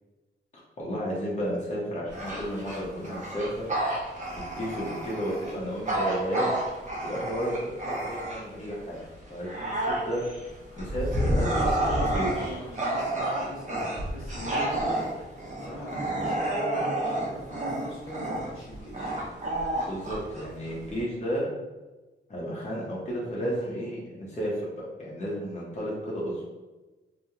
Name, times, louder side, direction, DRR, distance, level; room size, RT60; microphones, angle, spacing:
voice 1, 0.8-3.5 4.6-6.6 7.0-9.0 9.3-10.2 10.8-12.6 19.9-21.5 22.3-26.5, equal, 35° left, -5 dB, 0.7 m, -32 dB
Bark / Growling, 2.1-8.6 9.1-21.0, right 1 dB, 35° right, 0.6 m, -30 dB
voice 2, 10.7-15.3 15.6-19.2 23.4-23.6, equal, 85° left, -8 dB, 1.2 m, -40 dB
2.9 x 2.0 x 2.3 m, 1.1 s
wide cardioid pair, 95°, 21 cm